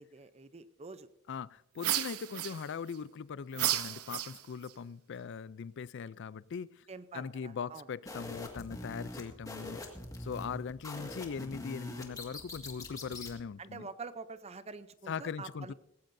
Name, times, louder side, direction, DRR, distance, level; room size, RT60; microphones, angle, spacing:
voice 1, 0.0-1.1 6.9-7.9 13.6-15.7, right 4 dB, 30° right, 13 dB, 0.6 m, -46 dB
voice 2, 1.3-6.9 7.1-9.8 10.2-13.9 15.1-15.7, left 6 dB, 55° left, 19 dB, 0.4 m, -40 dB
sound 1, 1.8-3.0 3.5-4.7, right 12 dB, 90° right, 0.8 m, -33 dB
sound 2, 8.1-13.4, left 1 dB, 15° left, 1.8 m, -44 dB
18.0 x 16.5 x 2.6 m, 0.86 s
head